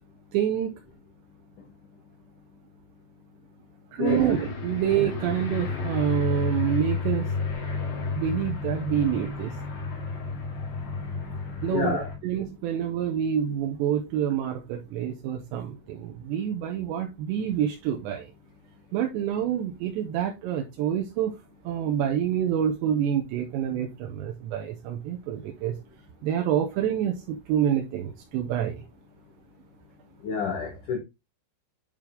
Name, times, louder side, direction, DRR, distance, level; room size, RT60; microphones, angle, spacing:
voice 1, 0.3-0.7 4.0-7.3 8.2-9.5 11.6-18.3 18.9-21.3 21.7-25.8 26.2-28.8, right 9 dB, 80° right, 2.8 m, -27 dB
voice 2, 4.0-4.4 11.6-12.1 30.2-31.0, left 5 dB, 80° left, 1.9 m, -29 dB
Aircraft, 4.1-12.2, left 4 dB, 55° left, 3.2 m, -31 dB
9.0 x 4.5 x 3.5 m
omnidirectional pair, 5.5 m